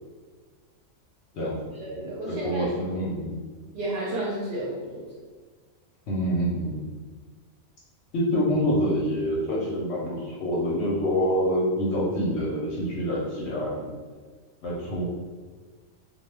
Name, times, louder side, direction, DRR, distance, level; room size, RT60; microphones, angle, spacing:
voice 1, 1.7-2.7 3.7-5.1, right 1 dB, 60° right, -6 dB, 0.7 m, -31 dB
voice 2, 2.3-3.3 6.1-6.8 8.1-13.9 14.6-15.0, equal, 60° left, -4 dB, 0.8 m, -26 dB
2.2 x 2.2 x 3.2 m, 1.4 s
omnidirectional pair, 1.5 m